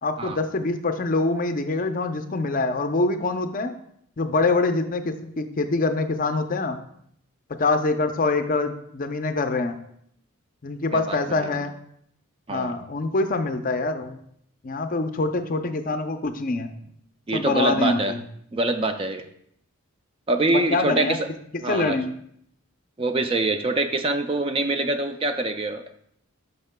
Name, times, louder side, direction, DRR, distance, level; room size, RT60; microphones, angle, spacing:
voice 1, 0.0-3.7 4.2-6.8 7.6-9.8 10.6-11.7 12.5-14.2 14.6-16.7 17.3-18.2 20.5-21.2 21.7-22.1, left 3 dB, 40° left, 8 dB, 0.5 m, -25 dB
voice 2, 10.9-11.6 12.5-12.7 17.3-18.1 18.5-19.3 20.3-21.3 21.6-22.0 23.0-25.9, right 2 dB, 25° right, 7 dB, 0.4 m, -25 dB
12.0 x 5.4 x 2.2 m, 0.68 s
head